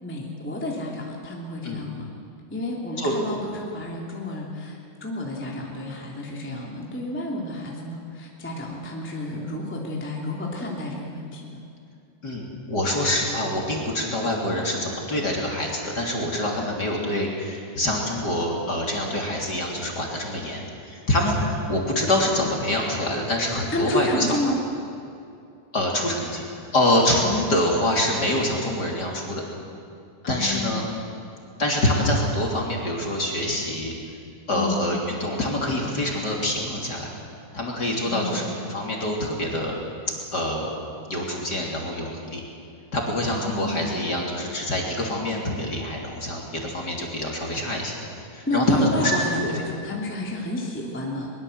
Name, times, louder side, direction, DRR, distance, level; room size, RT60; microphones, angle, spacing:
voice 1, 0.0-2.1 2.5-11.6 23.7-24.6 30.2-30.9 34.5-34.8 38.0-38.4 43.3-44.0 48.5-51.3, left 1 dB, 5° left, -2 dB, 2.0 m, -30 dB
voice 2, 12.2-24.3 25.7-26.4 26.7-29.4 30.3-30.8 31.6-33.9 34.5-37.1 37.5-39.7 40.3-40.7 41.1-42.4 42.9-47.9 48.3-49.5, left 1 dB, 25° left, -1 dB, 3.3 m, -25 dB
22.5 x 22.0 x 8.0 m, 2.5 s
omnidirectional pair, 4.6 m